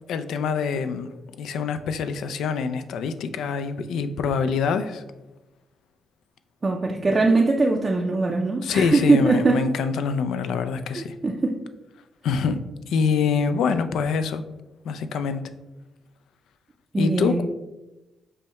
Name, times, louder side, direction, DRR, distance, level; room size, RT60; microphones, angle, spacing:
voice 1, 0.1-1.1 1.4-5.0 8.6-11.2 12.2-12.6 12.9-14.4 14.8-15.4 17.0-17.4, left 5 dB, 85° left, 11 dB, 0.3 m, -25 dB
voice 2, 6.6-9.6 11.0-11.6 16.9-17.4, right 3 dB, 30° right, 0 dB, 0.4 m, -21 dB
5.5 x 2.1 x 4.0 m, 1.0 s
cardioid pair, 115°, 0 cm